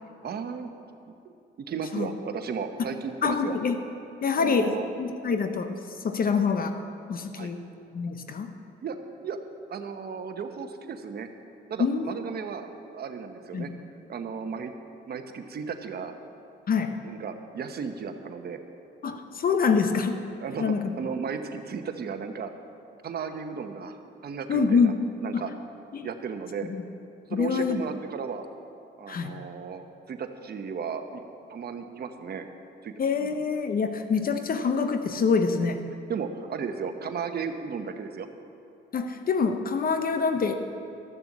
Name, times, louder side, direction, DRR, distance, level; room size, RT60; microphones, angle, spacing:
voice 1, 0.2-0.7 1.6-3.6 4.4-4.8 7.3-7.5 8.8-9.0 9.2-9.4 9.7-11.3 11.7-13.7 14.1-14.7 15.1-16.1 17.0-18.6 20.4-22.5 23.0-24.9 25.2-25.5 26.0-26.7 27.3-28.5 29.0-31.2 31.5-32.5 32.8-32.9 33.2-33.4 36.1-38.3, right 6 dB, 55° right, 7 dB, 1.0 m, -35 dB
voice 2, 3.2-3.8 4.2-4.7 5.0-5.7 6.0-6.8 7.1-7.6 7.9-8.5 11.8-12.2 13.5-13.7 16.7-17.0 19.0-20.2 20.6-20.9 24.5-25.0 25.3-25.4 25.9-26.1 26.7-26.8 27.3-27.8 29.1-29.3 33.0-35.8 38.9-40.5, left 5 dB, 45° left, 7 dB, 0.8 m, -25 dB
13.0 x 6.8 x 7.3 m, 2.7 s
cardioid pair, 90°, 20 cm